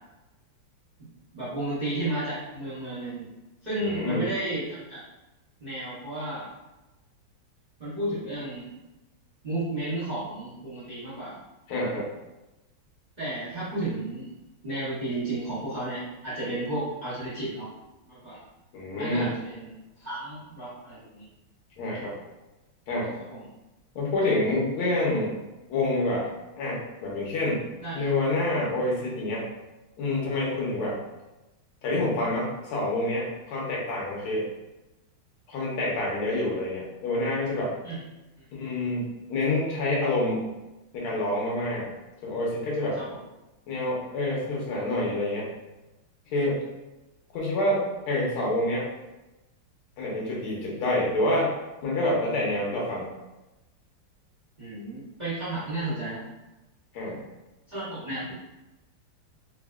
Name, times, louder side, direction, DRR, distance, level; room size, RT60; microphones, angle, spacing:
voice 1, 1.0-3.3 3.6-5.0 5.6-6.5 7.8-8.7 9.4-11.4 13.2-14.3 14.6-17.6 18.1-18.4 18.9-21.3 23.3-23.5 27.8-28.1 37.8-38.0 38.4-38.5 43.0-43.2 54.6-56.2 57.7-58.3, right 2 dB, 60° right, -11 dB, 0.4 m, -33 dB
voice 2, 3.8-4.3 11.7-12.1 18.7-19.3 21.8-22.1 22.9-23.1 23.9-25.3 25.7-26.3 26.6-27.6 28.0-29.5 30.0-31.0 31.8-34.5 35.5-37.7 38.5-40.5 40.9-41.9 42.2-43.0 43.7-45.5 46.3-46.6 47.3-48.9 50.0-51.5 51.8-53.1 56.9-57.2, left 1 dB, 85° left, -4 dB, 1.7 m, -27 dB
4.3 x 2.1 x 2.3 m, 1.0 s
omnidirectional pair, 2.3 m